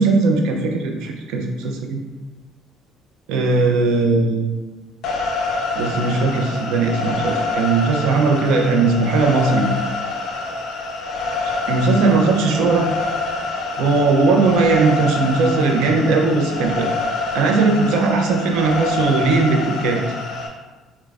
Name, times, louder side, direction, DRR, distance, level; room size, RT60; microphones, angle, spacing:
voice 1, 0.0-2.0 3.3-4.5 5.8-9.7 11.7-12.9 13.8-16.9 17.3-20.0, right 3 dB, 80° right, 2 dB, 0.5 m, -18 dB
sound 1, 5.0-20.5, left 3 dB, 65° left, 0.6 m, -26 dB
5.0 x 2.2 x 2.4 m, 1.2 s
cardioid pair, 110°, 0 cm